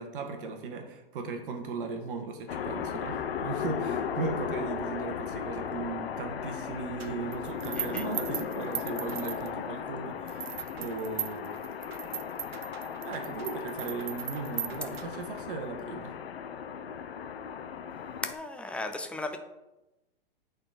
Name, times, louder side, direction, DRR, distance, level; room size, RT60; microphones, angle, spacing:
voice 1, 0.0-10.5 10.8-11.5 13.0-16.1, right 4 dB, 60° right, 5 dB, 1.3 m, -37 dB
sound 1, 2.5-18.3, left 7 dB, 85° left, 0.7 m, -36 dB
sound 2, 7.0-9.8 10.3-15.4, right 10 dB, 90° right, 0.6 m, -39 dB
voice 2, 7.7-8.1 18.2-19.4, left 2 dB, 5° left, 6 dB, 0.4 m, -36 dB
8.7 x 4.0 x 4.1 m, 1.0 s
hypercardioid pair, 125°, 30 cm